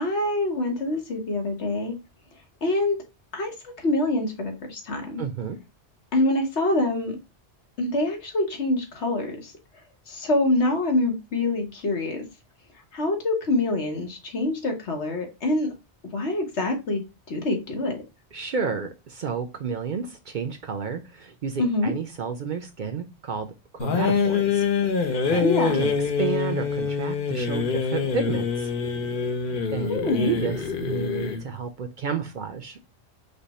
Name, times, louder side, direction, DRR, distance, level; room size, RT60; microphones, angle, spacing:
voice 1, 0.0-1.9 2.6-3.0 3.3-5.2 6.1-7.2 7.8-9.5 10.1-12.2 12.9-15.7 16.1-18.0 21.6-21.9 25.4-25.8 29.9-30.3, left 2 dB, 80° left, 1.5 m, -25 dB
voice 2, 5.2-5.6 18.3-24.6 24.9-25.5 25.7-28.7 29.5-32.8, right 6 dB, 55° right, 0.6 m, -31 dB
sound 1, 23.8-31.5, left 6 dB, 55° left, 0.8 m, -25 dB
5.1 x 2.2 x 4.1 m
omnidirectional pair, 1.1 m